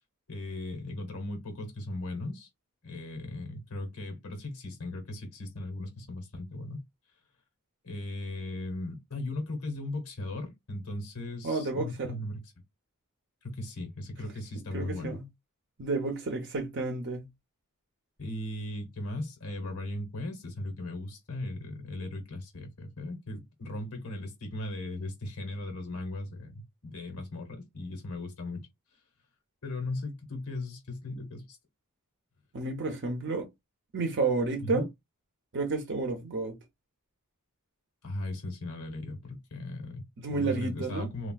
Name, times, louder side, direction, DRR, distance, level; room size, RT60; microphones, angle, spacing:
voice 1, 0.3-2.5 2.8-6.8 7.8-12.4 13.4-15.2 18.2-28.7 29.6-31.6 34.6-34.9 38.0-41.3, left 2 dB, 85° left, 1.1 m, -37 dB
voice 2, 11.4-12.2 14.7-15.2 15.8-17.3 32.5-33.5 33.9-34.9 35.5-36.6 40.2-41.1, right 3 dB, 55° right, 0.6 m, -31 dB
3.4 x 2.3 x 2.3 m
head